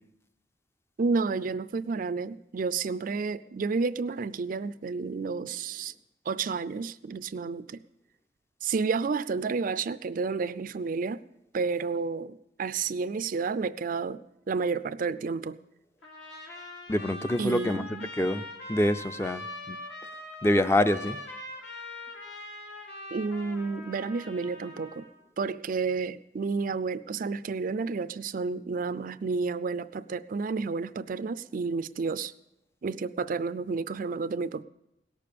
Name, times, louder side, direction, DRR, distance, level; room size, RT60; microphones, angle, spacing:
voice 1, 1.0-5.9 6.3-7.8 8.6-11.2 11.5-14.2 14.5-15.6 17.4-18.1 23.1-25.1 25.4-32.3 32.8-34.6, right 4 dB, 50° right, 0.4 m, -31 dB
Trumpet, 16.0-25.1, left 1 dB, 75° left, 2.7 m, -42 dB
voice 2, 16.9-17.8 18.2-18.4 18.7-19.8 20.4-21.2, left 1 dB, 15° left, 0.5 m, -25 dB
17.5 x 6.9 x 8.4 m
head